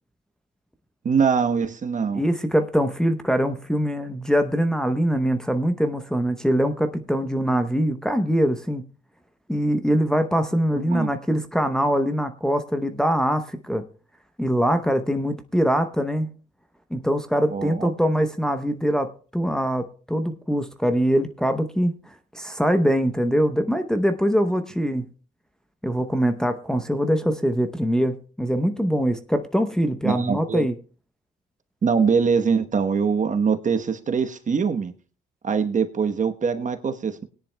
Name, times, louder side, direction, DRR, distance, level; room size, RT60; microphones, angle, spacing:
voice 1, 1.0-2.2 7.5-7.6 10.8-11.1 17.5-17.9 30.0-30.6 31.8-34.9 35.4-37.2, right 6 dB, 40° right, 1.1 m, -23 dB
voice 2, 2.1-8.8 9.5-13.8 14.4-16.3 16.9-21.9 22.3-25.1 25.8-30.7, equal, 5° left, 0.8 m, -23 dB
20.0 x 10.0 x 2.2 m
cardioid pair, 90°, 20 cm